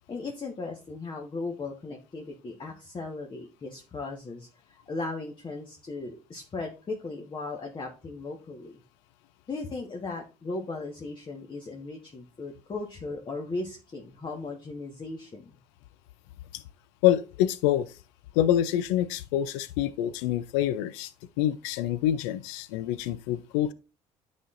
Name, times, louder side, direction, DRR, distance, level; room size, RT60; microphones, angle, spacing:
voice 1, 0.1-8.8 9.5-15.5, left 3 dB, 35° left, 1.3 m, -37 dB
voice 2, 17.0-17.9 18.3-21.1 21.4-23.7, left 12 dB, 90° left, 0.4 m, -26 dB
9.0 x 4.3 x 2.5 m
supercardioid pair, 70°, 14 cm